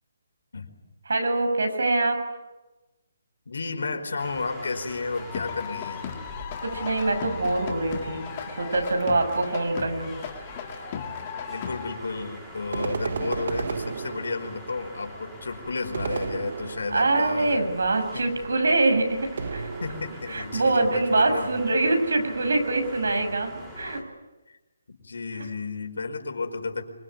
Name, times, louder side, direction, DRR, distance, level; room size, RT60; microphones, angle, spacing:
voice 1, 1.0-2.2 6.6-10.2 16.9-19.7 20.3-24.0, right 2 dB, 85° right, 6 dB, 6.7 m, -24 dB
voice 2, 3.4-6.1 11.5-17.7 18.1-18.2 19.8-21.5 24.5-24.6 24.9-26.8, left 3 dB, 80° left, 5 dB, 5.0 m, -32 dB
sound 1, 4.2-24.0, equal, 5° right, 3.8 m, -44 dB
sound 2, 5.1-12.0, left 7 dB, 25° left, 2.1 m, -36 dB
sound 3, 12.7-14.7 15.9-17.1 19.4-20.4, right 5 dB, 50° right, 1.3 m, -32 dB
25.0 x 23.5 x 9.8 m, 1.1 s
hypercardioid pair, 175°, 0 cm